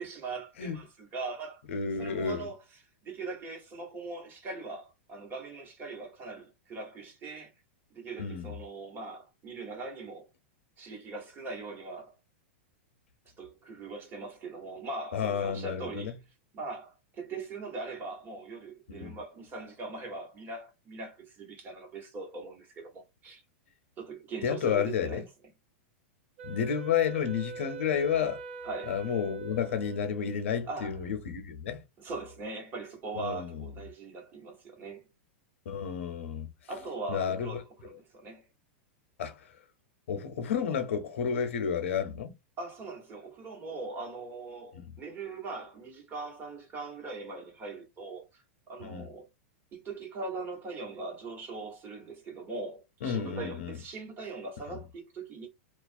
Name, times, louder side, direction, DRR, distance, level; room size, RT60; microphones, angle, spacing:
voice 1, 0.0-1.6 2.0-2.6 3.0-7.5 7.9-10.3 10.8-12.2 13.4-16.2 16.5-23.4 24.0-25.3 28.6-28.9 30.6-31.0 32.0-35.0 36.7-38.4 42.6-49.3 49.7-55.5, right 3 dB, 30° right, 1.1 m, -41 dB
voice 2, 1.7-2.5 8.2-8.5 15.1-16.1 18.9-19.2 24.4-25.2 26.4-28.4 28.9-31.8 33.1-33.6 35.7-36.5 37.1-37.5 39.2-39.5 40.1-42.3 44.7-44.9 48.8-49.1 53.0-53.8, left 7 dB, 75° left, 0.6 m, -31 dB
Wind instrument woodwind instrument, 26.4-30.7, right 5 dB, 70° right, 0.6 m, -43 dB
2.3 x 2.1 x 2.5 m
hypercardioid pair, 120°, 7 cm